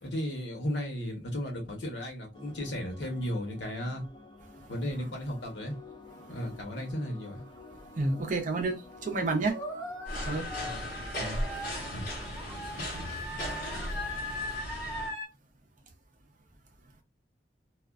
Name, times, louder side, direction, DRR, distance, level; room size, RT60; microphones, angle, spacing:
voice 1, 0.0-4.0 4.7-5.7 6.3-7.4 10.6-10.8 11.1-11.4 11.9-12.0, equal, 80° left, 0.9 m, -35 dB
sound 1, 2.3-10.7, left 3 dB, 25° left, 0.4 m, -51 dB
voice 2, 7.9-9.6 10.2-10.5, right 3 dB, 45° right, 0.7 m, -30 dB
sound 2, 9.5-15.3, left 1 dB, 5° left, 1.2 m, -39 dB
sound 3, 10.1-15.1, equal, 55° left, 1.0 m, -37 dB
2.3 x 2.2 x 2.4 m
head